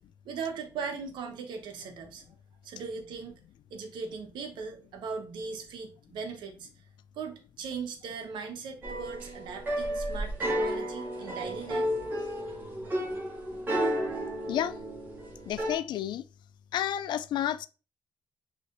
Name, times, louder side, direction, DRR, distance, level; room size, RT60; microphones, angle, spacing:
voice 1, 0.2-2.2 2.6-3.4 3.7-6.7 7.1-11.9, right 5 dB, 90° right, 1.0 m, -39 dB
sound 1, 8.8-15.8, equal, 25° right, 1.8 m, -32 dB
voice 2, 15.5-16.2 16.7-17.6, left 11 dB, 75° left, 0.3 m, -30 dB
6.4 x 3.1 x 2.6 m
cardioid pair, 95°, 8 cm